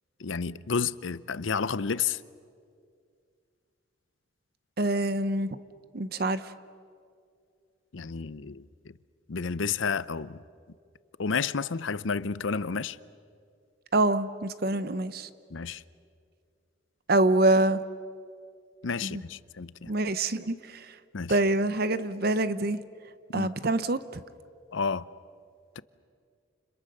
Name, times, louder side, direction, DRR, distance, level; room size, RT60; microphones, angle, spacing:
voice 1, 0.2-2.2 7.9-8.9 9.3-10.4 11.2-13.0 15.5-15.8 18.8-19.9 21.1-21.4 23.3-23.5 24.7-25.1, left 5 dB, 75° left, 0.7 m, -31 dB
voice 2, 4.8-5.5 5.9-6.5 13.9-15.3 17.1-17.8 19.0-19.2 19.9-20.9 21.3-22.8 23.3-24.2, right 2 dB, 50° right, 0.8 m, -25 dB
30.0 x 29.5 x 6.7 m
head